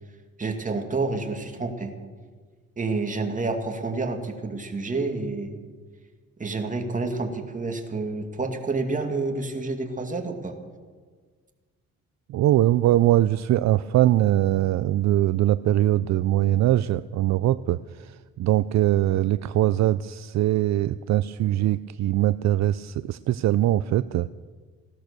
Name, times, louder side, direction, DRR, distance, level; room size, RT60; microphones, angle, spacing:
voice 1, 0.4-2.0 2.8-5.6 6.4-10.6, right 3 dB, 25° right, 4 dB, 2.4 m, -29 dB
voice 2, 12.3-24.3, right 13 dB, 65° right, 15 dB, 0.5 m, -22 dB
16.5 x 12.5 x 6.8 m, 1.5 s
cardioid pair, 90°, 30 cm